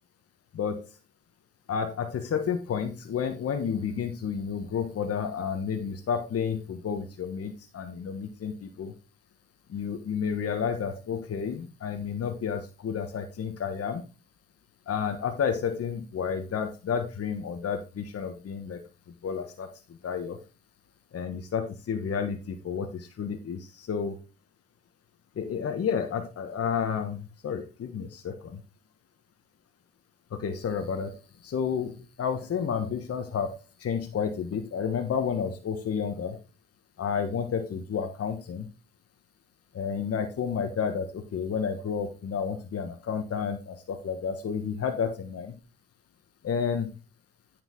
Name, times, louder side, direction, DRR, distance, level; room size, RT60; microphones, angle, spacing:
voice 1, 0.5-0.9 1.7-8.9 9.7-14.0 14.9-18.8 19.2-19.7 20.0-20.4 21.1-24.2 25.4-28.6 30.3-31.1 31.4-36.4 37.0-38.7 39.7-45.5 46.4-46.9, left 7 dB, 55° left, 6 dB, 1.4 m, -31 dB
9.3 x 5.2 x 3.9 m, 0.32 s
supercardioid pair, 60°, 30 cm